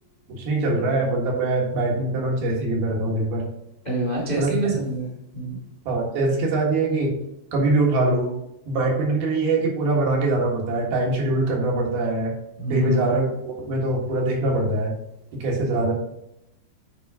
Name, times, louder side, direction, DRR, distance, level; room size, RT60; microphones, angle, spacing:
voice 1, 0.3-3.4 4.4-4.5 5.9-7.1 7.5-8.3 8.7-12.3 12.7-14.9 15.3-15.9, right 2 dB, 65° right, -2 dB, 3.5 m, -23 dB
voice 2, 3.8-5.6 12.6-13.1, right 2 dB, 20° left, -5 dB, 1.1 m, -27 dB
10.0 x 5.0 x 3.7 m, 0.81 s
omnidirectional pair, 4.9 m